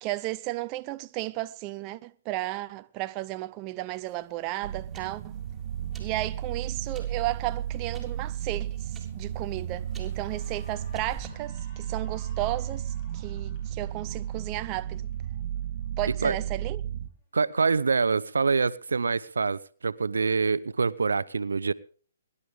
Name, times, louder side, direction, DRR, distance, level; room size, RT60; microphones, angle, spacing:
voice 1, 0.0-5.4 6.0-15.1 16.0-16.8, right 16 dB, 30° right, 0.6 m, -34 dB
sound 1, 3.9-11.3, right 4 dB, 5° right, 3.9 m, -51 dB
sound 2, 4.6-17.1, right 10 dB, 50° right, 1.3 m, -34 dB
Cheering / Applause, 8.7-9.0 9.4-16.0, left 2 dB, 35° left, 5.7 m, -58 dB
voice 2, 17.3-21.7, right 4 dB, 80° right, 0.7 m, -25 dB
23.0 x 11.0 x 3.6 m
hypercardioid pair, 135°, 0 cm